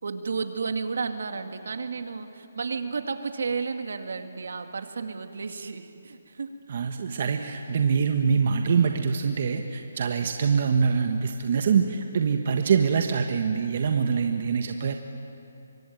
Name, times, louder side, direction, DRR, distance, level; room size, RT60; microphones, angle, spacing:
voice 1, 0.0-7.3, right 5 dB, 70° right, 6 dB, 2.2 m, -33 dB
voice 2, 6.7-14.9, right 6 dB, 45° right, 4 dB, 1.4 m, -24 dB
26.0 x 24.5 x 9.4 m, 2.7 s
hypercardioid pair, 170°, 0 cm